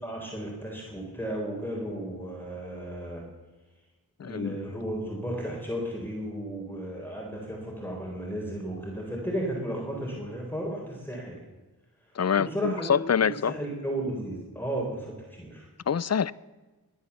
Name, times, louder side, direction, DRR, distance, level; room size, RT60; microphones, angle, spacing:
voice 1, 0.0-3.2 4.2-11.4 12.4-12.9 13.2-15.7, right 1 dB, 5° left, 4.2 m, -34 dB
voice 2, 4.2-4.6 12.2-13.5 15.9-16.3, left 7 dB, 45° left, 0.5 m, -25 dB
21.5 x 9.4 x 7.0 m
wide cardioid pair, 60°, 37 cm